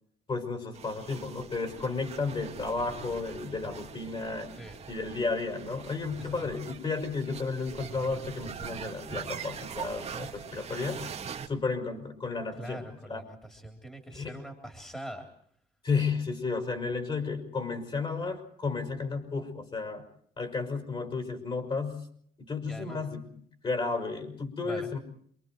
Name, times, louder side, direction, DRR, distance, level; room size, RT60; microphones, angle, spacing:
voice 1, 0.3-4.5 4.9-11.1 11.5-12.8 13.1-13.2 14.1-14.4 15.8-20.0 20.4-22.1 22.4-23.2 23.6-25.0, left 4 dB, 30° left, 4 dB, 5.5 m, -33 dB
sound 1, 0.7-11.5, right 7 dB, 40° right, 2.2 m, -42 dB
voice 2, 6.2-6.5 12.6-15.3 22.7-23.1 24.6-24.9, right 1 dB, 5° left, 3 dB, 3.6 m, -43 dB
28.0 x 23.5 x 4.6 m, 0.63 s
cardioid pair, 110°, 17 cm